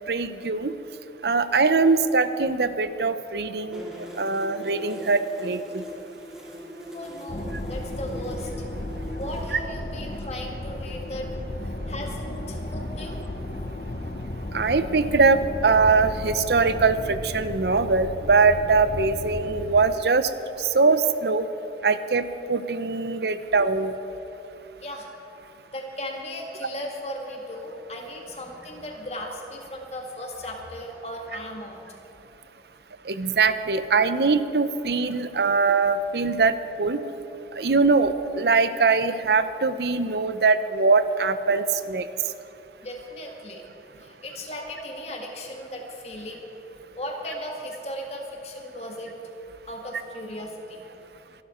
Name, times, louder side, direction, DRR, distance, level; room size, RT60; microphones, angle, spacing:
voice 1, 0.1-0.7 1.2-3.9 4.2-5.8 14.5-20.3 20.6-21.5 21.8-23.9 33.1-37.0 37.6-42.0, right 4 dB, 70° right, 12 dB, 0.7 m, -22 dB
sound 1, 3.7-9.5, equal, 5° right, 2.7 m, -41 dB
voice 2, 6.9-8.5 9.2-11.3 11.9-13.2 24.8-25.1 25.7-31.8 42.8-43.6 44.0-46.4 47.0-49.2 49.7-50.8, left 1 dB, 35° left, 1 dB, 2.0 m, -36 dB
sound 2, 7.3-19.9, left 1 dB, 50° left, 0.9 m, -34 dB
23.5 x 12.5 x 4.4 m, 3.0 s
head